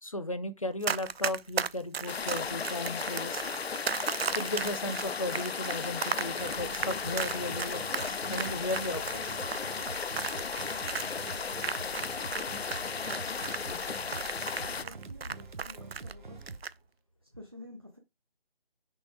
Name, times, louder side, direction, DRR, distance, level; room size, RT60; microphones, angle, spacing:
voice 1, 0.0-3.5 4.3-9.4, left 1 dB, 35° left, 0.5 m, -35 dB
Run, 0.8-12.4 12.7-16.1 16.4-16.7, right 6 dB, 80° right, 0.5 m, -34 dB
sound 1, 2.1-14.8, left 5 dB, 85° left, 0.6 m, -35 dB
sound 2, 6.4-16.6, right 4 dB, 50° right, 1.0 m, -45 dB
voice 2, 14.6-16.4 17.2-18.0, left 1 dB, 25° right, 0.5 m, -49 dB
6.2 x 4.0 x 4.7 m
figure-of-eight pair, 160°, 30 cm